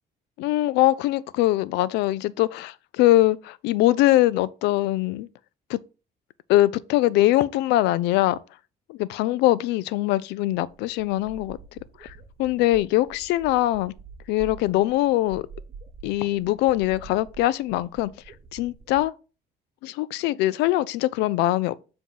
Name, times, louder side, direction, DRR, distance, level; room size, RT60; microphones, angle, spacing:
voice 1, 0.4-5.3 5.7-5.8 6.5-8.4 8.9-13.9 14.3-15.5 16.0-18.1 18.5-19.1 19.8-21.7, left 16 dB, 90° left, 0.4 m, -22 dB
sound 1, 10.2-10.3 10.5-19.0, right 5 dB, 35° right, 1.1 m, -46 dB
7.2 x 3.0 x 5.5 m
cardioid pair, 110°, 17 cm